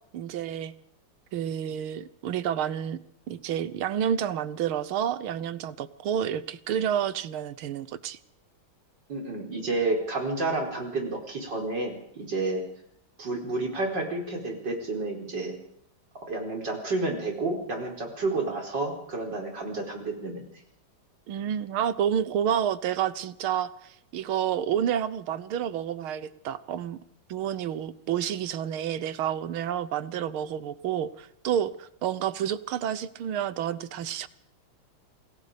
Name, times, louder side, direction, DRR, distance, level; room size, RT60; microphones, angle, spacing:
voice 1, 0.1-0.7 1.3-3.0 3.3-8.2 21.3-27.0 27.3-34.3, right 9 dB, 90° right, 15 dB, 1.9 m, -29 dB
voice 2, 9.1-12.6 13.2-15.5 16.3-20.4, right 2 dB, 55° right, 1 dB, 5.2 m, -30 dB
27.5 x 19.5 x 5.1 m, 0.70 s
omnidirectional pair, 2.2 m